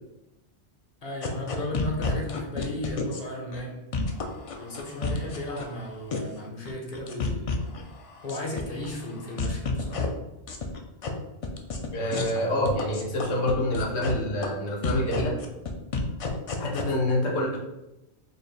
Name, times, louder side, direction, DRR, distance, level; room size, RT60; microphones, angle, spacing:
voice 1, 1.0-3.8 4.5-7.6 8.2-10.0, left 1 dB, 40° left, -1 dB, 0.8 m, -35 dB
sound 1, 1.2-3.2 3.5-3.6 3.9-5.7 6.1-6.4 6.6-7.8 8.1-8.9 9.2-10.1 10.5-11.1 11.4-11.9 12.1-12.3 12.6-14.1 14.4-14.5 14.8-16.8, left 4 dB, 55° left, 0.3 m, -30 dB
voice 2, 11.9-15.4 16.6-17.6, left 1 dB, 90° left, -1 dB, 1.1 m, -27 dB
4.1 x 2.5 x 3.3 m, 0.95 s
omnidirectional pair, 1.1 m